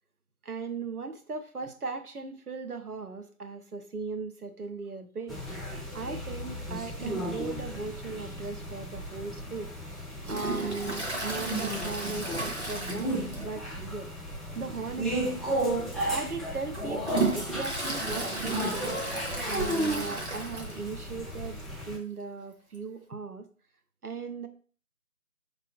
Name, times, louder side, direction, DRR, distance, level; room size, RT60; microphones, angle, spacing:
voice 1, 0.4-10.0 10.3-14.1 14.5-15.5 16.1-19.0 19.4-23.5 24.0-24.5, right 4 dB, 80° right, 8 dB, 0.8 m, -38 dB
sound 1, 5.3-22.0, right 1 dB, ahead, 0.5 m, -34 dB
Toilet flush, 10.2-13.7 14.0-14.1 14.5-14.6 15.4-15.5 16.1-21.0 21.3-21.4 21.6-21.7 22.7-22.8, right 2 dB, 50° right, 0.9 m, -34 dB
3.8 x 3.3 x 3.8 m, 0.41 s
figure-of-eight pair, 165°, 44 cm